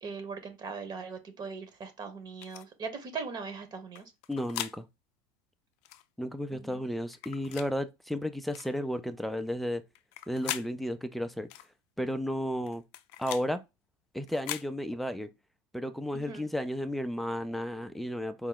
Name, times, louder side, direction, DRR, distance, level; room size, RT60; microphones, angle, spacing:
voice 1, 0.0-4.1 6.5-6.9 16.1-16.4, right 5 dB, 35° right, 1.1 m, -40 dB
sound 1, 2.4-2.6 3.9-4.8 5.8-6.0 7.1-7.7 8.5-8.7 9.9-10.7 11.5-11.7 12.7-13.5 14.3-14.7, left 14 dB, 60° left, 0.5 m, -39 dB
voice 2, 4.3-4.9 6.2-9.8 10.3-11.5 12.0-12.8 13.2-13.6 14.1-15.3 15.7-18.5, equal, ahead, 0.5 m, -33 dB
4.7 x 2.1 x 3.8 m
supercardioid pair, 105°, 12 cm